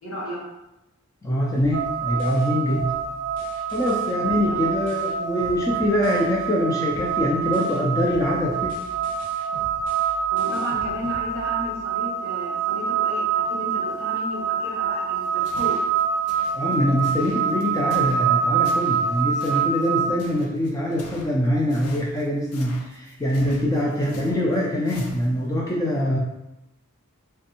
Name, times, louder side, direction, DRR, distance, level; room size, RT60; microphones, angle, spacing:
voice 1, 0.0-0.4 4.3-4.7 10.3-15.7, left 1 dB, 60° left, -6 dB, 1.5 m, -34 dB
voice 2, 1.2-2.9 3.7-8.8 16.5-26.2, left 1 dB, 15° left, -4 dB, 0.3 m, -24 dB
sound 1, 1.5-6.6 6.9-11.9, equal, 40° left, 0.9 m, -43 dB
sound 2, 1.7-20.1, right 7 dB, 65° right, 0.6 m, -26 dB
sound 3, 15.2-25.5, left 2 dB, 85° left, 0.6 m, -45 dB
3.3 x 3.1 x 2.9 m, 0.92 s
head